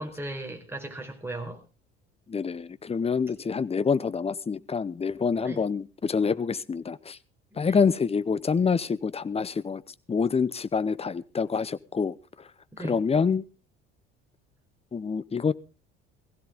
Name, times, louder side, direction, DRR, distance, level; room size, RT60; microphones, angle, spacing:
voice 1, 0.0-1.6 5.4-5.6 7.5-7.8 12.7-13.0, right 1 dB, 5° right, 4.5 m, -37 dB
voice 2, 2.3-7.2 7.6-9.8 10.1-12.1 12.8-13.4 14.9-15.5, left 5 dB, 20° left, 0.7 m, -26 dB
16.0 x 16.0 x 3.7 m
figure-of-eight pair, 60°, 32 cm